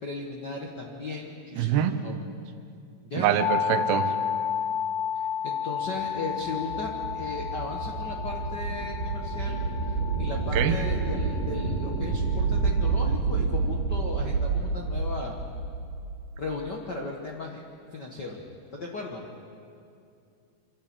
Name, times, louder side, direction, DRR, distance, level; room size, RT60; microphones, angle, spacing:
voice 1, 0.0-2.1 3.0-3.4 5.1-15.4 16.4-17.6 17.9-18.4 18.7-19.2, left 3 dB, 65° left, 0 dB, 1.0 m, -36 dB
voice 2, 1.5-2.0 3.1-4.1 10.5-10.8, right 10 dB, 85° right, 10 dB, 2.8 m, -24 dB
sound 1, 3.4-13.2, left 8 dB, 45° left, 1.8 m, -32 dB
sound 2, 6.3-16.5, right 4 dB, 65° right, 3.2 m, -29 dB
27.0 x 12.0 x 8.7 m, 2.5 s
omnidirectional pair, 4.3 m